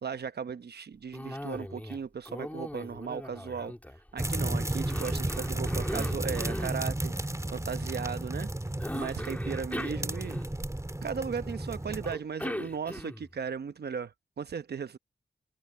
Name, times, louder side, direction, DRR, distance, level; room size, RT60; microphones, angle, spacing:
voice 1, 0.0-3.7 4.1-7.1 7.5-8.5 8.9-10.4 11.0-15.0, right 6 dB, 70° right, 1.0 m, -36 dB
Cough, 1.1-2.0 2.3-4.3 4.9-6.8 8.8-10.8 12.0-13.3, left 1 dB, 10° left, 2.6 m, -39 dB
sound 1, 4.2-12.2, right 1 dB, 15° right, 2.5 m, -33 dB
cardioid pair, 50°, 18 cm